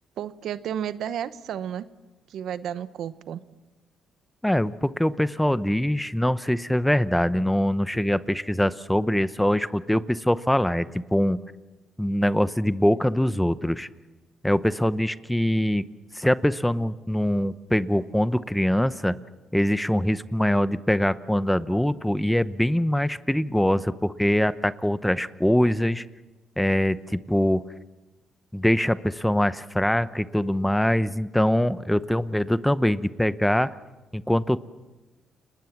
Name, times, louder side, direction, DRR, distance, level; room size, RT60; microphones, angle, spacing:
voice 1, 0.2-1.9 2.3-3.4, right 9 dB, 75° right, 14 dB, 0.9 m, -32 dB
voice 2, 4.4-11.4 12.0-13.9 14.4-15.8 16.1-19.2 19.5-26.1 26.6-27.6 28.5-33.7 34.1-34.6, equal, 5° left, 14 dB, 0.8 m, -23 dB
30.0 x 20.0 x 7.3 m, 1.2 s
cardioid pair, 90°, 0 cm